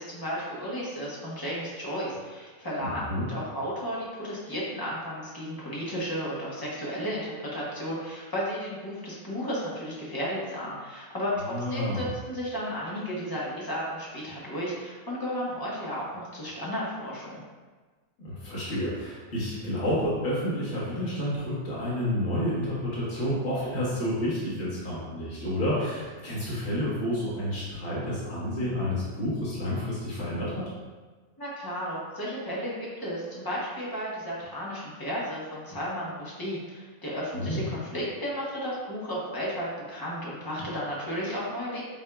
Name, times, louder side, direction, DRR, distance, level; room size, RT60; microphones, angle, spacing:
voice 1, 0.0-17.4 31.4-41.8, equal, 20° left, -6 dB, 0.9 m, -33 dB
voice 2, 2.8-3.2 11.4-12.1 18.2-30.7 37.3-37.6, equal, 55° left, -8 dB, 1.6 m, -30 dB
7.9 x 2.7 x 2.3 m, 1.4 s
omnidirectional pair, 1.4 m